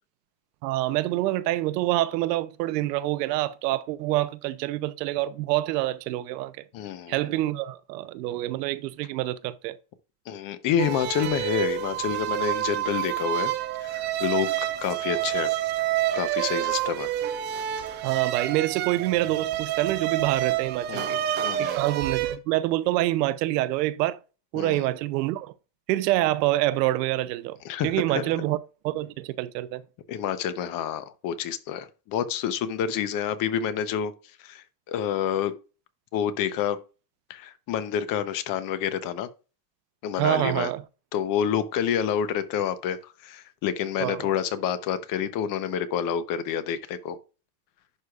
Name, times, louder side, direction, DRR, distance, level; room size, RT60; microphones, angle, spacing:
voice 1, 0.6-6.5 7.1-9.8 18.0-21.2 21.6-24.2 24.5-25.5 25.9-27.6 27.8-28.6 28.8-29.8 40.2-40.8 44.0-44.3, right 16 dB, 80° right, 0.8 m, -26 dB
voice 2, 6.7-7.2 10.3-13.5 13.8-15.5 16.1-17.1 20.9-21.1 21.4-21.8 24.5-24.9 27.6-28.3 30.1-34.1 34.4-35.5 36.1-36.8 37.3-39.3 40.0-40.7 41.1-47.2, left 8 dB, 40° left, 0.9 m, -28 dB
sound 1, 10.8-22.4, right 12 dB, 25° right, 0.3 m, -28 dB
11.0 x 4.9 x 2.4 m
supercardioid pair, 145°, 48 cm